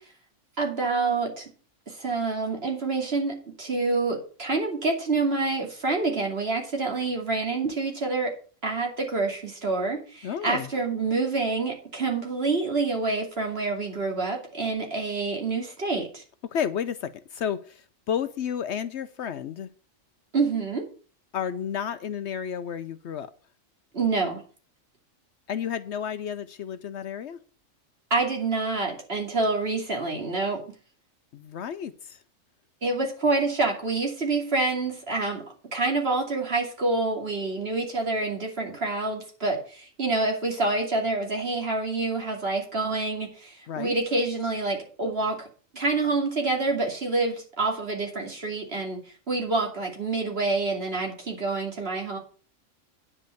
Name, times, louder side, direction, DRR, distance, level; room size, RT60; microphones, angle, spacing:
voice 1, 0.6-1.4 1.9-8.3 8.6-16.2 20.3-20.8 23.9-24.4 28.1-30.6 32.8-35.4 35.7-45.5 45.7-49.0 49.3-52.2, right 3 dB, 50° right, 1 dB, 2.8 m, -27 dB
voice 2, 10.2-10.7 16.4-19.7 21.3-23.3 25.5-27.4 31.3-32.2 43.7-44.0, left 8 dB, 65° left, 12 dB, 0.9 m, -31 dB
9.7 x 5.3 x 7.6 m, 0.41 s
omnidirectional pair, 1.3 m